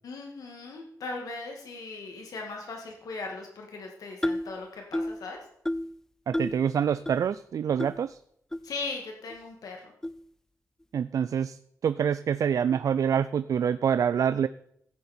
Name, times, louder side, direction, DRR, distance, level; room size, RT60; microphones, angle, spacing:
voice 1, 0.0-5.4 8.6-9.9, left 3 dB, 80° left, 1 dB, 2.0 m, -38 dB
sound 1, 4.2-4.5 4.9-5.2 5.7-5.9 6.3-6.6 7.1-7.2 7.8-7.9 8.5-8.6 9.3-9.4 10.0-10.2, left 1 dB, 10° left, 0.4 m, -30 dB
voice 2, 6.3-8.2 10.9-14.5, right 8 dB, 70° right, 13 dB, 0.4 m, -26 dB
14.5 x 9.7 x 4.4 m, 0.71 s
wide cardioid pair, 110°, 6 cm